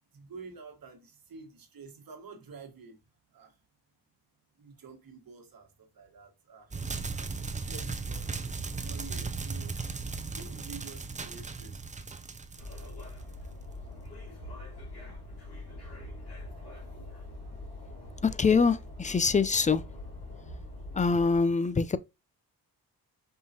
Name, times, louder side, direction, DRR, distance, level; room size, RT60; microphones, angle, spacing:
voice 1, 0.1-3.0 3.3-3.5 4.6-6.7 7.1-8.3 8.8-9.7 10.3-11.8 12.8-12.9, right 4 dB, 55° right, 1.6 m, -49 dB
sound 1, 6.7-13.5, right 4 dB, 20° right, 0.6 m, -37 dB
sound 2, 12.6-21.4, left 2 dB, 70° left, 2.4 m, -43 dB
voice 2, 18.2-19.8 20.9-22.0, left 5 dB, 20° left, 0.4 m, -24 dB
5.5 x 2.8 x 2.8 m
supercardioid pair, 55°, 40 cm